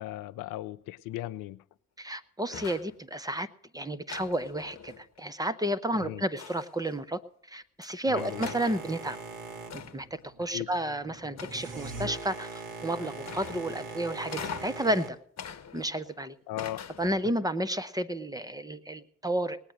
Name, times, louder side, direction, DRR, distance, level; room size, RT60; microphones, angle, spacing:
voice 1, 0.0-1.6 5.9-6.2 8.1-8.5 10.5-10.7 16.5-16.8, left 15 dB, 65° left, 0.6 m, -37 dB
voice 2, 2.0-3.5 3.7-7.2 7.5-9.2 9.7-15.2 15.7-16.3 17.0-19.6, right 1 dB, 10° right, 1.2 m, -31 dB
sound 1, 2.5-3.0 4.1-5.2 6.4-6.9 7.8-7.9 8.4-8.8 9.7-10.2 11.4-11.9 13.2-13.8 14.3-14.9 15.4-16.1 16.6-17.3, left 7 dB, 50° left, 1.3 m, -42 dB
Boat Water vehicle, 8.2-15.1, right 3 dB, 60° right, 2.0 m, -41 dB
19.0 x 9.1 x 6.5 m
hypercardioid pair, 40°, 35 cm